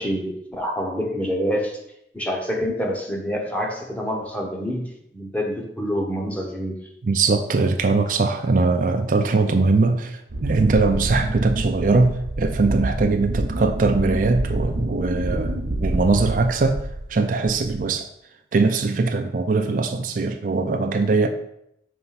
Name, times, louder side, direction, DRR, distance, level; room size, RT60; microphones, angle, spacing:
voice 1, 0.0-1.8 2.1-6.8, equal, 10° left, 0 dB, 0.9 m, -27 dB
voice 2, 7.0-15.6 15.8-18.1 18.5-21.3, right 3 dB, 50° right, 6 dB, 0.4 m, -21 dB
Wind, 10.3-17.1 17.5-17.9, right 1 dB, 75° right, 0.8 m, -27 dB
5.4 x 3.4 x 5.7 m, 0.77 s
head